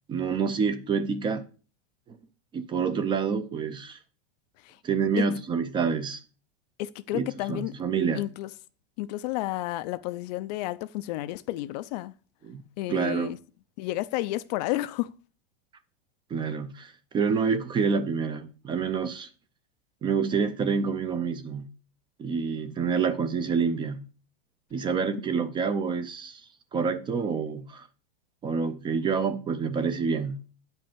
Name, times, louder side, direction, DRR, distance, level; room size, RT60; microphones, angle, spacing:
voice 1, 0.1-1.5 2.5-4.0 4.8-6.2 7.1-8.2 12.4-12.6 12.9-13.3 16.3-19.3 20.0-21.7 22.2-24.1 24.7-26.4 26.7-27.9 28.4-30.4, right 5 dB, 15° right, 0.5 m, -27 dB
voice 2, 6.8-7.7 8.1-8.5 9.0-12.1 12.8-13.4 13.8-15.1, left 16 dB, 45° left, 0.5 m, -31 dB
9.2 x 5.4 x 7.2 m
supercardioid pair, 155°, 30 cm